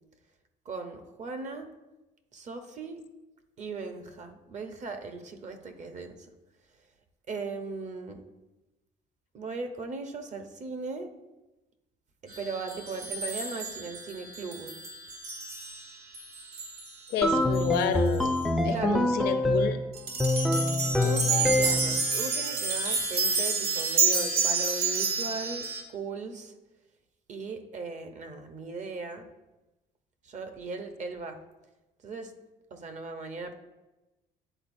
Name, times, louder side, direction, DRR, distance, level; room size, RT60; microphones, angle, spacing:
voice 1, 0.6-1.7 2.3-3.0 3.6-6.3 7.3-8.2 9.3-11.1 12.2-14.8 17.4-17.6 18.7-19.1 21.0-26.5 27.3-29.3 30.2-31.4 32.0-32.3 32.7-33.5, right 4 dB, 45° right, 7 dB, 0.8 m, -38 dB
sound 1, 12.3-17.2 17.6-17.7 18.2-18.3 19.9-25.8, right 4 dB, 80° right, 1.5 m, -30 dB
voice 2, 17.1-18.4 18.6-19.8, left 8 dB, 75° left, 8 dB, 0.7 m, -30 dB
sound 2, 17.2-19.8 20.2-22.1, left 1 dB, ahead, 0.4 m, -25 dB
10.0 x 4.0 x 2.6 m, 1.0 s
cardioid pair, 110°, 17 cm